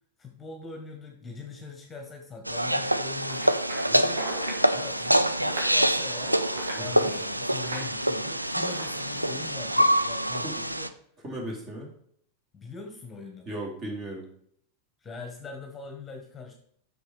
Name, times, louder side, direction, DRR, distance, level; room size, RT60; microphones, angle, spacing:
voice 1, 0.2-3.6 3.9-4.3 4.7-10.9 12.5-13.5 15.0-16.5, left 4 dB, 15° left, 3 dB, 1.4 m, -42 dB
sound 1, 2.5-10.9, equal, 85° right, 0.4 m, -26 dB
sound 2, 3.2-9.5, right 2 dB, 70° right, 2.0 m, -39 dB
voice 2, 11.2-11.9 13.5-14.3, right 1 dB, 30° right, 0 dB, 2.9 m, -36 dB
6.6 x 6.3 x 4.9 m, 0.66 s
figure-of-eight pair, 90°, 0 cm